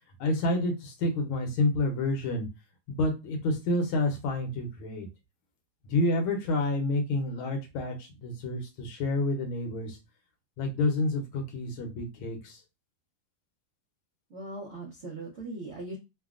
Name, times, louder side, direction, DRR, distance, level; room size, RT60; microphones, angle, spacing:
voice 1, 0.2-2.5 2.9-5.1 5.8-10.0 10.6-12.6, left 2 dB, 85° left, 4 dB, 1.7 m, -29 dB
voice 2, 14.3-16.0, right 2 dB, 85° right, -3 dB, 0.6 m, -39 dB
3.8 x 2.2 x 2.4 m, 0.25 s
omnidirectional pair, 2.2 m